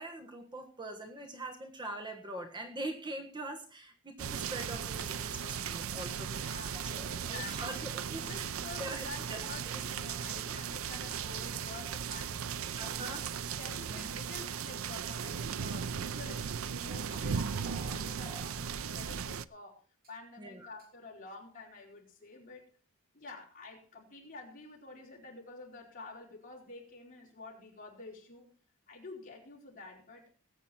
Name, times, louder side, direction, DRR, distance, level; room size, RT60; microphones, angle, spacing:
voice 1, 0.0-6.5 6.7-8.5 8.8-9.8 10.1-10.2 12.8-13.2 13.9-14.1 20.4-20.7, right 1 dB, 20° right, 4 dB, 1.4 m, -43 dB
sound 1, 4.2-19.4, right 7 dB, 70° right, 0.5 m, -37 dB
voice 2, 6.3-7.9 8.2-13.2 13.6-19.8 20.1-22.6 23.1-28.5 28.9-30.3, left 3 dB, 40° left, -2 dB, 4.5 m, -49 dB
sound 2, 17.1-18.6 19.3-19.4 20.0-20.1 20.8-20.9, right 2 dB, 45° right, 2.9 m, -49 dB
19.5 x 8.4 x 4.3 m, 0.38 s
head